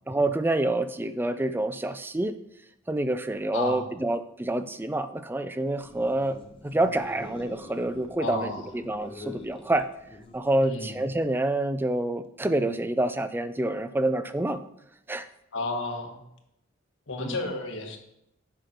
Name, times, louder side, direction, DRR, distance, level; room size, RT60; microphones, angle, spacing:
voice 1, 0.1-2.4 2.9-6.4 6.6-9.9 10.3-14.6 15.1-15.3 17.2-17.4, right 1 dB, 10° right, 11 dB, 0.4 m, -27 dB
voice 2, 3.5-3.8 8.2-8.6 10.6-10.9 15.5-16.2 17.1-18.0, left 2 dB, 75° left, 3 dB, 1.3 m, -32 dB
sound 1, 5.7-10.8, left 3 dB, 30° left, 0.9 m, -45 dB
8.1 x 5.8 x 4.4 m, 0.81 s
head